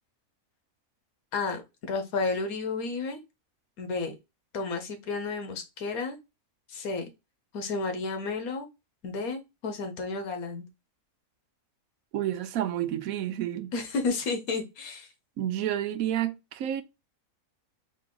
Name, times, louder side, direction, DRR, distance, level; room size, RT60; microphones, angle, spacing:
voice 1, 1.3-3.2 3.8-4.2 4.5-6.2 6.7-7.1 7.5-8.7 9.0-10.7 13.7-15.1, left 4 dB, 90° left, 1.4 m, -32 dB
voice 2, 12.1-13.7 15.4-16.8, right 11 dB, 80° right, 1.0 m, -30 dB
4.1 x 2.8 x 3.7 m
omnidirectional pair, 1.5 m